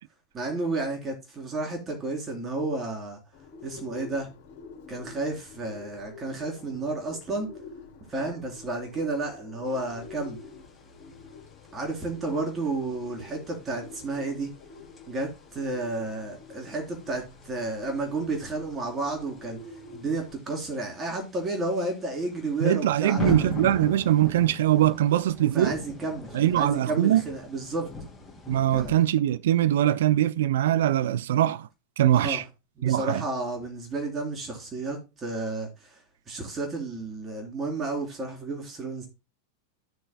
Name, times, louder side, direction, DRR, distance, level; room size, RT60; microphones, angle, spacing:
voice 1, 0.3-3.2 3.6-4.3 4.9-7.5 8.1-10.4 11.7-14.5 15.1-19.6 19.9-23.3 25.5-27.9 28.7-29.0 32.1-32.4 32.8-36.0 36.3-39.1, right 2 dB, 20° right, 3.7 m, -31 dB
Bird, 3.3-20.3, left 4 dB, 50° left, 2.7 m, -47 dB
sound 1, 9.7-28.9, left 3 dB, 10° left, 2.7 m, -42 dB
voice 2, 22.6-25.7 26.3-27.2 28.5-31.7 32.0-32.4 32.8-33.2, right 12 dB, 55° right, 0.4 m, -22 dB
14.0 x 6.5 x 2.2 m
figure-of-eight pair, 90°, 0 cm